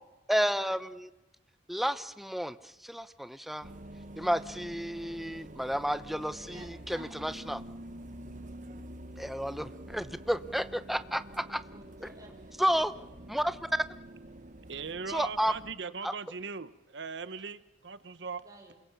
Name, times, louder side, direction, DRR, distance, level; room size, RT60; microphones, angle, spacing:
voice 1, 0.3-1.1 1.7-3.7 4.2-7.6 9.2-11.6 12.6-12.9 13.3-13.6 15.1-15.5 16.0-16.1, equal, ahead, 12 dB, 0.8 m, -31 dB
sound 1, 3.6-15.8, right 1 dB, 45° right, 1.3 m, -47 dB
voice 2, 6.3-7.3 11.6-13.6 18.4-18.7, right 2 dB, 20° right, 0 dB, 6.0 m, -55 dB
voice 3, 14.7-18.4, right 5 dB, 65° right, 14 dB, 0.9 m, -39 dB
28.0 x 22.0 x 7.0 m, 1.0 s
head